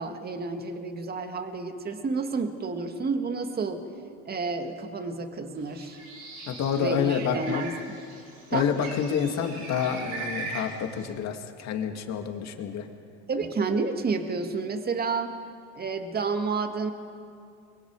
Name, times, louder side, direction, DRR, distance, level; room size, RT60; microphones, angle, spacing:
voice 1, 0.0-3.8 4.3-6.0 6.8-8.0 8.5-8.7 13.3-15.4 15.8-16.9, right 4 dB, 25° right, 6 dB, 2.1 m, -30 dB
Bird, 5.6-11.1, right 3 dB, 80° right, 8.0 m, -40 dB
voice 2, 6.5-7.6 8.5-12.9, left 7 dB, 50° left, 4 dB, 2.5 m, -28 dB
30.0 x 23.5 x 4.9 m, 2.4 s
supercardioid pair, 100°, 34 cm